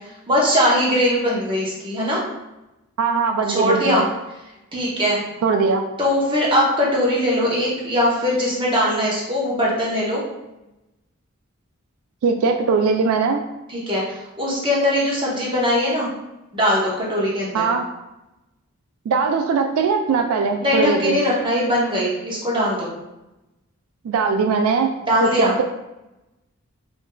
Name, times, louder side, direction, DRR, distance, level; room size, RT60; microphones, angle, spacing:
voice 1, 0.3-2.2 3.5-4.0 4.7-5.2 6.0-10.2 13.7-16.1 16.5-17.7 20.6-22.9 25.1-25.5, equal, 25° right, -5 dB, 0.9 m, -20 dB
voice 2, 3.0-4.0 5.4-5.8 12.2-13.4 17.5-17.8 19.1-21.2 24.0-24.9 25.2-25.6, right 5 dB, 80° right, 5 dB, 0.3 m, -20 dB
4.8 x 2.6 x 2.2 m, 0.97 s
head